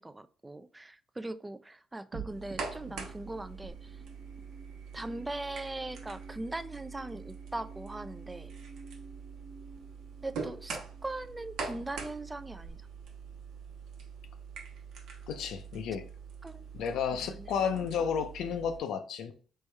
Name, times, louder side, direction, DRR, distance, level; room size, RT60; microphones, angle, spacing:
voice 1, 0.0-4.0 4.9-8.5 10.2-12.8 16.4-17.6, right 2 dB, 15° right, 0.3 m, -40 dB
sound 1, 2.1-12.8, right 4 dB, 50° right, 1.0 m, -51 dB
sound 2, 2.3-18.8, right 5 dB, 85° right, 1.0 m, -44 dB
voice 2, 15.3-16.0 16.7-19.3, left 7 dB, 80° left, 0.6 m, -32 dB
4.2 x 3.3 x 3.4 m
cardioid pair, 90°, 0 cm